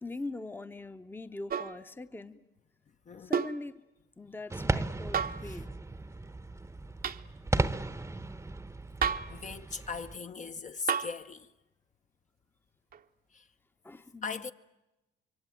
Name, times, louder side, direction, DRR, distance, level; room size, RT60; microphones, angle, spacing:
voice 1, 0.0-2.4 3.2-3.8 4.2-5.7 13.8-14.5, left 2 dB, 10° left, 0.9 m, -42 dB
sound 1, 1.5-1.8 3.3-3.6 5.1-5.5 7.0-7.2 9.0-9.4 10.9-11.2 12.9-13.0, right 7 dB, 50° right, 0.9 m, -31 dB
voice 2, 3.1-3.4 5.4-5.6 9.3-11.5 13.3-13.5 14.2-14.5, left 5 dB, 40° left, 0.9 m, -39 dB
sound 2, 4.5-10.2, right 2 dB, 15° right, 0.9 m, -35 dB
26.5 x 23.0 x 9.2 m
cardioid pair, 90°, 20 cm